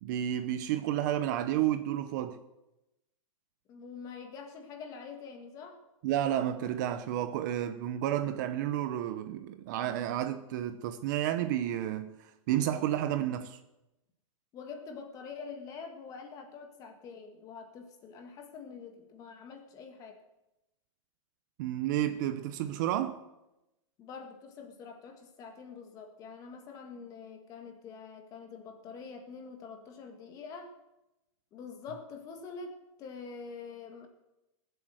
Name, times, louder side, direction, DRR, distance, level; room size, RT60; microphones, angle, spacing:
voice 1, 0.0-2.4 6.0-13.6 21.6-23.2, right 11 dB, 35° right, 0.7 m, -31 dB
voice 2, 3.7-5.8 14.5-20.2 24.0-30.8 31.5-34.1, left 5 dB, 20° left, 1.7 m, -45 dB
18.5 x 7.9 x 7.7 m
supercardioid pair, 170°, 17 cm